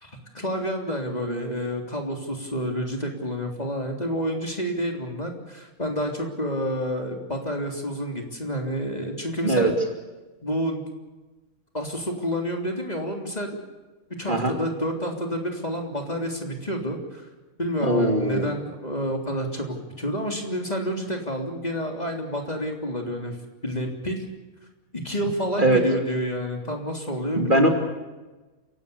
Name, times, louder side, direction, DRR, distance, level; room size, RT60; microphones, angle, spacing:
voice 1, 0.0-9.7 10.4-10.8 11.7-13.6 14.2-17.3 17.6-23.4 23.6-24.3 24.9-27.7, equal, 30° left, 3 dB, 3.5 m, -29 dB
voice 2, 17.8-18.5 25.6-25.8 27.4-27.7, right 1 dB, 35° right, 4 dB, 3.2 m, -20 dB
29.5 x 17.5 x 7.0 m, 1.2 s
omnidirectional pair, 1.5 m